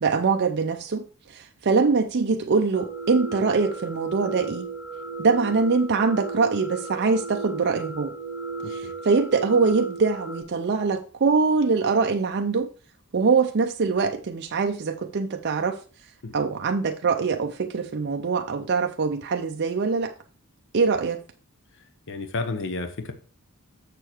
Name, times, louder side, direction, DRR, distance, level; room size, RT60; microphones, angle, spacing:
voice 1, 0.0-4.7 5.2-8.2 8.7-12.7 13.1-15.8 16.3-20.1 20.7-21.2, right 4 dB, 50° right, 0.5 m, -23 dB
sound 1, 2.7-10.4, right 4 dB, 90° left, 3.9 m, -34 dB
voice 2, 22.1-23.1, left 3 dB, 60° left, 0.9 m, -31 dB
6.8 x 6.7 x 4.4 m
head